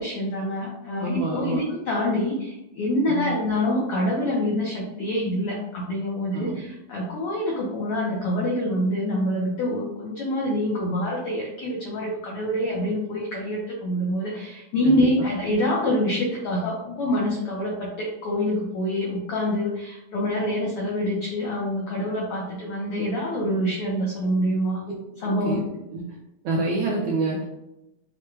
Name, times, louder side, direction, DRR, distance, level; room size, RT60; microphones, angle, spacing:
voice 1, 0.0-24.8 25.2-25.6, left 1 dB, 75° left, -3 dB, 1.3 m, -26 dB
voice 2, 0.9-1.6 3.1-3.3 6.3-6.6 14.8-15.0 25.4-25.6 25.9-26.0 26.4-27.4, right 2 dB, 85° right, -4 dB, 1.3 m, -27 dB
5.9 x 2.2 x 3.2 m, 0.91 s
omnidirectional pair, 3.5 m